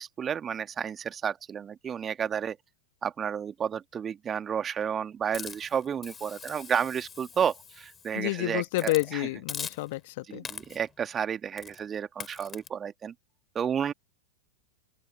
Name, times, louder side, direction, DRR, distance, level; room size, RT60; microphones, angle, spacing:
voice 1, 0.0-2.6 3.0-9.3 10.3-13.1 13.6-13.9, right 8 dB, 20° right, 2.0 m, -31 dB
Hiss, 5.3-8.2 8.7-9.1 9.5-10.1 10.4-10.9 11.6-11.8 12.2-12.7, left 6 dB, 20° left, 6.9 m, -42 dB
voice 2, 8.1-10.4, left 20 dB, 50° left, 1.8 m, -29 dB
open air
figure-of-eight pair, 90°, 0 cm